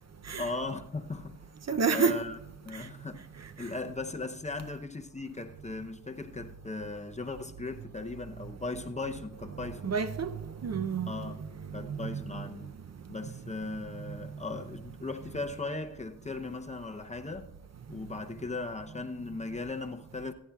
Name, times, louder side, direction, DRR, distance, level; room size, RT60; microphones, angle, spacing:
voice 1, 0.4-1.4 1.7-2.4 2.6-3.2 3.6-10.0 11.1-11.4 11.7-12.8 13.1-17.6 17.9-20.3, left 3 dB, 20° left, 0.6 m, -38 dB
voice 2, 1.7-2.2 2.7-2.9 3.6-3.7 9.5-11.1 11.7-12.5 14.1-14.2, right 5 dB, 40° right, 0.5 m, -31 dB
26.5 x 9.9 x 2.3 m
wide cardioid pair, 105°, 40 cm